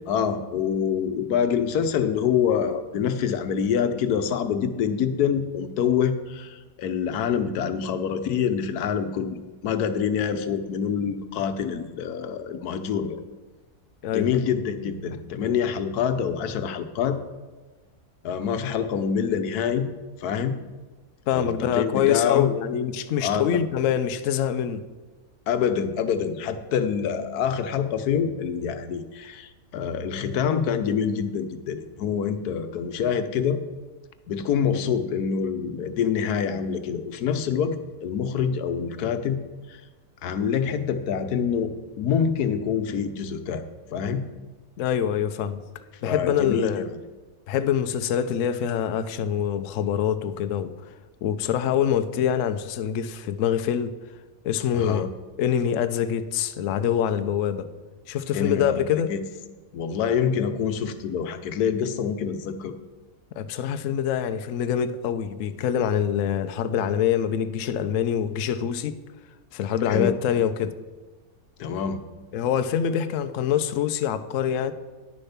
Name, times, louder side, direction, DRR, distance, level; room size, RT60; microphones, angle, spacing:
voice 1, 0.0-13.2 14.1-17.2 18.2-19.9 20.2-20.6 21.3-22.5 23.2-23.6 25.5-33.6 34.3-39.4 39.7-39.8 40.2-43.7 43.9-44.2 46.1-46.9 54.7-55.1 58.3-59.2 59.7-62.7 69.9-70.1 71.6-72.0, left 7 dB, 90° left, 1.3 m, -26 dB
voice 2, 14.0-14.4 21.3-24.8 44.8-45.6 46.0-46.8 47.5-50.7 51.2-53.9 54.4-55.1 55.4-57.7 58.1-59.1 63.3-69.0 69.5-70.7 72.3-74.7, left 9 dB, 65° left, 0.9 m, -25 dB
10.0 x 6.8 x 5.7 m
omnidirectional pair, 1.6 m